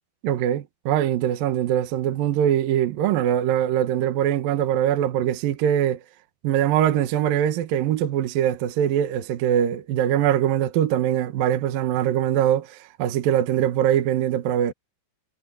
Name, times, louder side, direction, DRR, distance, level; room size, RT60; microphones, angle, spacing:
voice 1, 0.2-6.0 6.4-14.7, right 10 dB, 65° right, 2.5 m, -22 dB
omnidirectional pair, 5.4 m